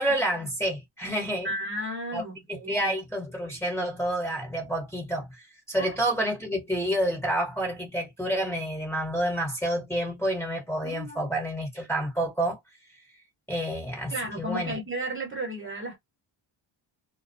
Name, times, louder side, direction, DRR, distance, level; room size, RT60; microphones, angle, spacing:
voice 1, 0.0-1.5 2.1-2.2 2.5-5.4 5.7-12.6 13.5-14.8, right 1 dB, 5° left, 1.2 m, -29 dB
voice 2, 1.4-2.9 5.7-5.9 10.8-11.3 14.1-16.0, right 1 dB, 25° right, 1.1 m, -34 dB
2.2 x 2.2 x 2.5 m
cardioid pair, 90°, 48 cm